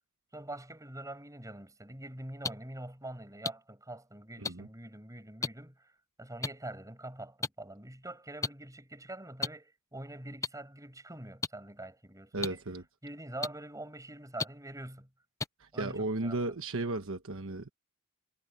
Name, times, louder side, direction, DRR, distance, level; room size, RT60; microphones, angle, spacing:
voice 1, 0.3-5.9 6.2-12.6 13.0-15.1 15.7-16.9, right 1 dB, 15° right, 7.2 m, -44 dB
sound 1, 2.4-2.5 3.4-3.5 4.4-4.5 5.4-5.5 6.4-6.5 7.4-7.5 8.4-8.5 9.4-9.5 10.4-10.5 11.4-11.5 12.4-12.5 13.4-13.5 14.4-14.5 15.4-15.5, left 4 dB, 15° left, 0.4 m, -32 dB
voice 2, 12.3-12.8 15.6-17.7, right 2 dB, 65° right, 1.2 m, -35 dB
head